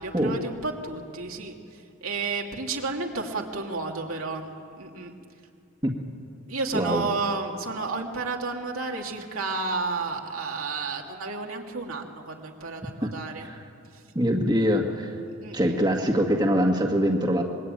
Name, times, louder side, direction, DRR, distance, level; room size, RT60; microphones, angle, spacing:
voice 1, 0.0-4.5 4.8-5.1 6.5-13.5 13.9-14.0 15.4-15.8, right 3 dB, 75° right, 1 dB, 2.7 m, -32 dB
voice 2, 6.7-7.1 13.0-13.1 13.4-13.6 14.2-15.2 15.5-17.4, equal, 20° right, 1 dB, 1.8 m, -23 dB
26.5 x 22.5 x 9.1 m, 2.4 s
head